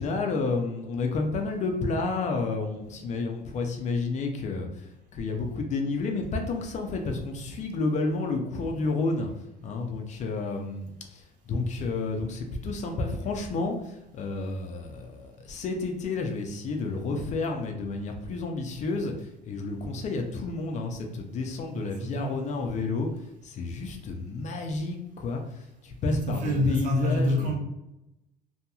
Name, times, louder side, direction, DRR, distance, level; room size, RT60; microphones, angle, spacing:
voice 1, 0.0-9.3 9.6-19.1 19.4-23.1 23.4-25.4 25.8-27.6, left 3 dB, 40° left, 0.4 m, -30 dB
voice 2, 21.7-22.5 26.1-27.6, left 1 dB, 50° right, 0.7 m, -27 dB
2.8 x 2.7 x 2.3 m
cardioid pair, 140°, 18 cm